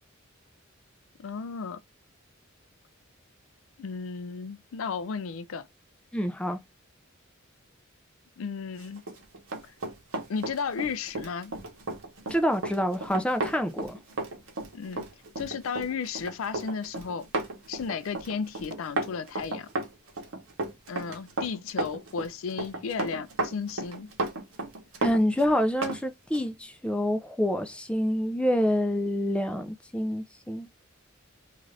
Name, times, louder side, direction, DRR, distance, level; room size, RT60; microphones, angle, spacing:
voice 1, 1.2-1.8 3.8-5.7 8.4-9.0 10.3-11.6 14.7-15.1 15.4-17.3 17.7-19.7 20.9-24.1, left 5 dB, 75° left, 0.4 m, -34 dB
voice 2, 6.1-6.6 12.3-14.0 25.0-30.9, equal, 5° left, 0.4 m, -27 dB
Run, 9.0-26.0 26.3-26.5, right 2 dB, 75° right, 0.9 m, -34 dB
2.5 x 2.4 x 3.2 m
head